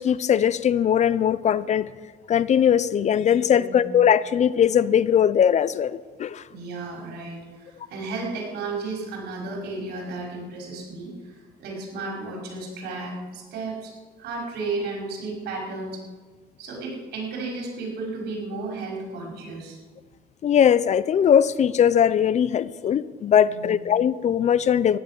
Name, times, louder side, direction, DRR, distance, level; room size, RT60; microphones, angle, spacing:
voice 1, 0.0-1.9 2.3-6.4 20.4-25.0, left 9 dB, 45° left, 18 dB, 0.6 m, -20 dB
voice 2, 3.5-3.9 6.5-13.9 14.2-16.0 16.6-19.8 23.5-23.9, right 3 dB, 75° right, -1 dB, 5.4 m, -33 dB
15.5 x 11.0 x 7.5 m, 1.4 s
cardioid pair, 110°, 17 cm